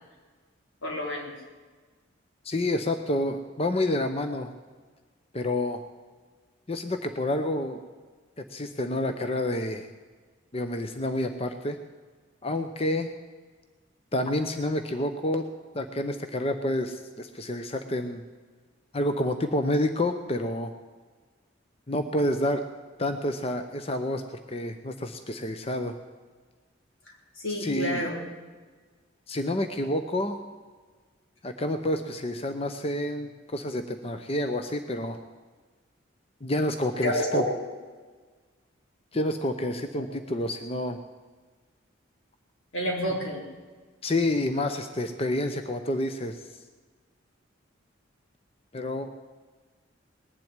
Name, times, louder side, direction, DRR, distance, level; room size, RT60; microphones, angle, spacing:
voice 1, 0.8-1.3 27.4-28.2 37.0-37.4 42.7-43.4, equal, 85° left, -1 dB, 4.2 m, -29 dB
voice 2, 2.4-4.5 5.3-5.8 6.7-7.8 8.4-9.9 10.5-11.8 12.4-13.1 14.1-15.5 15.7-18.2 18.9-20.7 21.9-22.6 23.0-25.9 27.6-28.1 29.3-30.4 31.4-35.2 36.4-37.4 39.1-41.0 44.0-46.4 48.7-49.1, left 1 dB, 30° left, 7 dB, 0.7 m, -29 dB
19.5 x 7.7 x 9.7 m, 1.4 s
head